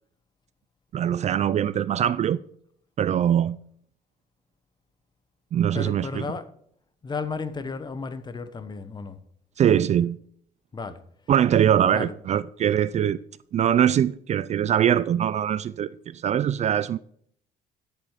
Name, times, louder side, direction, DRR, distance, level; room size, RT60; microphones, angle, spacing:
voice 1, 0.9-2.4 3.0-3.6 5.5-6.3 9.6-10.2 11.3-13.2 13.5-17.0, right 9 dB, 40° right, 0.4 m, -22 dB
voice 2, 5.7-6.5 7.0-9.2 10.7-11.0 11.9-12.1, left 4 dB, 25° left, 1.0 m, -33 dB
11.5 x 6.9 x 5.0 m
cardioid pair, 110°, 17 cm